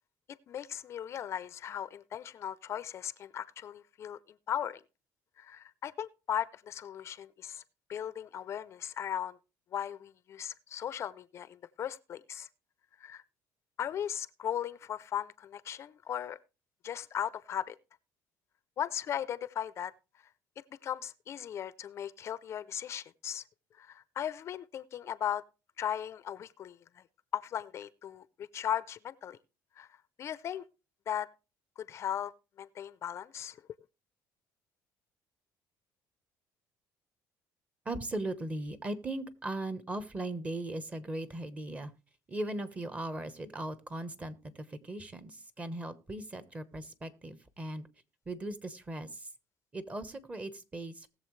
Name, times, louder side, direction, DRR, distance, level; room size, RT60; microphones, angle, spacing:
voice 1, 0.5-4.2 4.5-4.8 5.4-7.6 7.9-9.4 9.7-12.5 13.0-13.2 13.8-16.4 16.8-17.7 18.8-19.9 20.8-23.4 23.8-25.4 25.8-26.8 27.3-29.4 29.8-29.9 30.2-30.6 31.1-31.3 31.8-32.3 32.6-33.6, left 10 dB, 45° left, 0.5 m, -37 dB
voice 2, 37.8-41.9 42.3-47.9 48.3-49.3 49.7-51.1, right 1 dB, 20° right, 1.1 m, -38 dB
19.5 x 7.2 x 3.2 m
cardioid pair, 135°, 7 cm